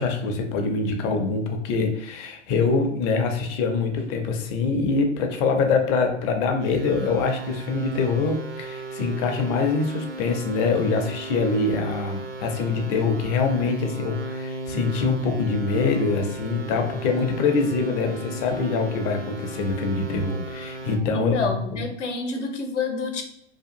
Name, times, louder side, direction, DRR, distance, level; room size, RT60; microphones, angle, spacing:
voice 1, 0.0-21.8, left 4 dB, 30° left, 4 dB, 0.4 m, -24 dB
sound 1, 6.6-21.0, right 2 dB, 85° right, 0.6 m, -36 dB
voice 2, 21.1-23.2, left 3 dB, 80° left, 4 dB, 0.6 m, -28 dB
2.8 x 2.3 x 2.5 m, 0.77 s
figure-of-eight pair, 100°, 36 cm